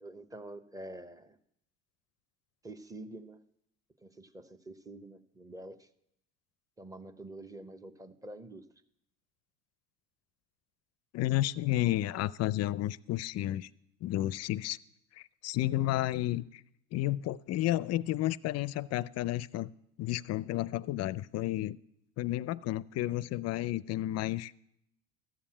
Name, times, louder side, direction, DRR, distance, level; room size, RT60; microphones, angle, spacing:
voice 1, 0.0-1.4 2.6-3.4 4.0-5.9 6.8-8.6, right 1 dB, 10° right, 11 dB, 0.8 m, -47 dB
voice 2, 11.1-13.7 14.0-14.8 15.4-16.6 16.9-19.7 20.0-21.8 22.2-24.5, left 15 dB, 40° left, 19 dB, 0.4 m, -31 dB
14.0 x 7.1 x 8.7 m, 0.76 s
supercardioid pair, 105°, 39 cm